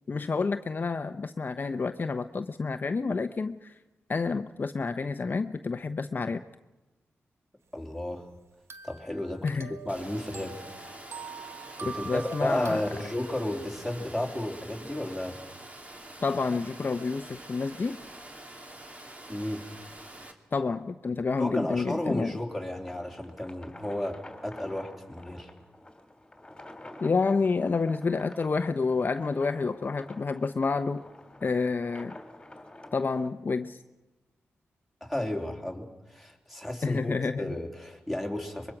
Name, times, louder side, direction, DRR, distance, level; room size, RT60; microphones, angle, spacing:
voice 1, 0.1-3.7 4.1-6.4 9.4-9.7 11.9-12.8 16.2-18.0 20.5-22.3 27.0-31.0 31.4-32.1 32.9-33.8 36.8-37.5, left 4 dB, 45° left, 8 dB, 0.8 m, -29 dB
voice 2, 7.7-8.3 8.8-9.5 9.8-10.6 11.8-15.4 19.3-19.6 21.4-25.5 35.0-38.7, left 1 dB, ahead, 2 dB, 3.4 m, -33 dB
sound 1, 8.7-13.6, right 5 dB, 70° right, 1.3 m, -45 dB
Water, 9.9-20.3, right 1 dB, 30° right, 2.7 m, -46 dB
sound 2, 22.0-33.3, left 1 dB, 15° left, 3.1 m, -49 dB
24.5 x 22.5 x 6.0 m, 1.1 s
cardioid pair, 80°, 5 cm